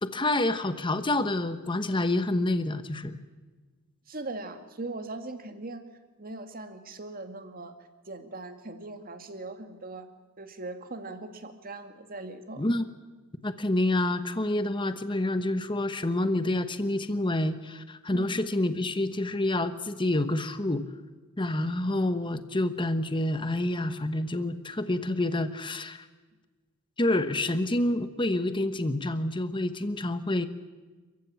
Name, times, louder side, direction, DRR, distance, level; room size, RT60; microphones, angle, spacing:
voice 1, 0.0-3.2 12.6-12.8 13.4-20.9 21.4-26.1 27.0-30.5, left 1 dB, 20° left, 10 dB, 1.1 m, -28 dB
voice 2, 4.1-5.8 6.2-7.8 8.1-10.1 10.4-12.7 18.1-18.3, right 2 dB, 40° right, 8 dB, 2.1 m, -40 dB
28.5 x 15.0 x 8.8 m, 1.3 s
head